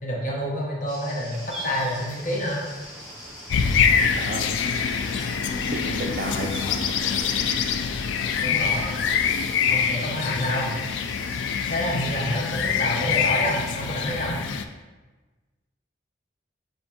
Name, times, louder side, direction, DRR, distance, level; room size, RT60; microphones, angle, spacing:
voice 1, 0.0-2.6 8.4-8.9 9.7-10.7 11.7-14.4, equal, 45° left, -2 dB, 0.9 m, -28 dB
sound 1, 0.9-13.3, left 1 dB, 25° left, 1.1 m, -44 dB
sound 2, 1.3-7.3, right 1 dB, 5° right, 0.7 m, -42 dB
sound 3, 3.5-14.6, left 6 dB, 75° left, 0.3 m, -25 dB
voice 2, 4.1-4.6 5.1-5.3 5.5-6.5 12.9-13.0, right 3 dB, 50° right, 0 dB, 0.3 m, -33 dB
6.7 x 2.6 x 2.7 m, 1.2 s
head